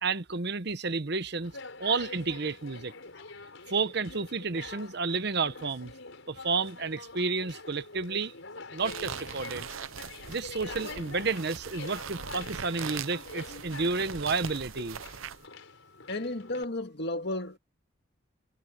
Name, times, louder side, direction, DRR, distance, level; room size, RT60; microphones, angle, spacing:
voice 1, 0.0-1.5 1.8-2.9 3.7-5.9 6.3-8.3 8.7-9.7 10.3-15.0, right 4 dB, 55° right, 1.0 m, -31 dB
Conversation, 1.4-16.6, left 3 dB, 70° left, 5.2 m, -45 dB
sound 1, 8.8-15.5, right 7 dB, 85° right, 0.7 m, -41 dB
voice 2, 16.1-17.6, left 2 dB, 55° left, 2.0 m, -33 dB
head